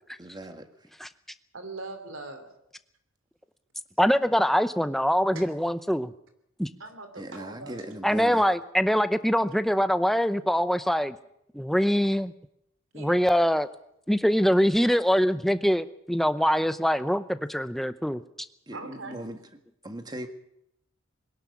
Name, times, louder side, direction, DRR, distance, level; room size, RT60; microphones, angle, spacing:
voice 1, 0.2-0.9 7.2-8.5 18.7-19.4 19.8-20.3, right 1 dB, 20° right, 7 dB, 1.8 m, -39 dB
voice 2, 1.5-2.5 5.3-5.5 6.8-7.8 12.9-13.4 18.7-19.2, right 3 dB, 70° right, 8 dB, 3.0 m, -41 dB
voice 3, 4.0-6.1 6.6-6.7 8.0-11.2 11.5-12.3 12.9-13.7 14.1-18.2, equal, ahead, 11 dB, 0.7 m, -23 dB
21.5 x 12.0 x 9.8 m, 0.79 s
head